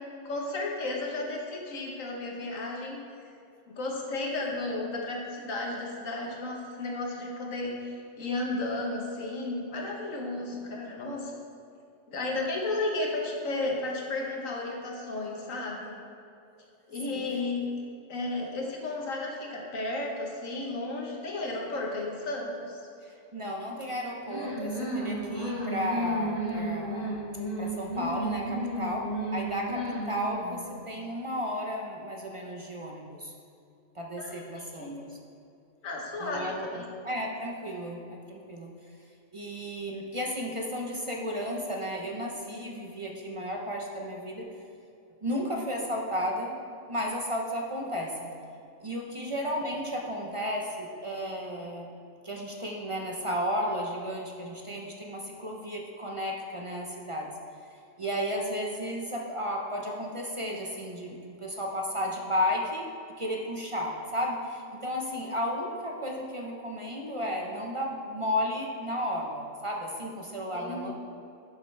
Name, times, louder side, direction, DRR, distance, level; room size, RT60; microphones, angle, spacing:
voice 1, 0.2-3.0 3.7-11.3 12.1-15.9 16.9-17.7 18.1-22.8 34.2-35.0 35.8-36.9 70.5-70.9, left 2 dB, 75° left, -1 dB, 1.5 m, -33 dB
voice 2, 23.0-27.2 27.6-33.3 33.9-35.2 36.2-38.7 39.3-44.5 45.2-46.6 46.9-48.3 48.8-51.9 52.2-57.3 57.7-62.9 63.2-70.9, equal, 35° right, -1 dB, 0.6 m, -33 dB
sound 1, 24.2-30.7, right 1 dB, 55° left, 1.7 m, -33 dB
10.5 x 5.8 x 3.3 m, 2.6 s
omnidirectional pair, 1.4 m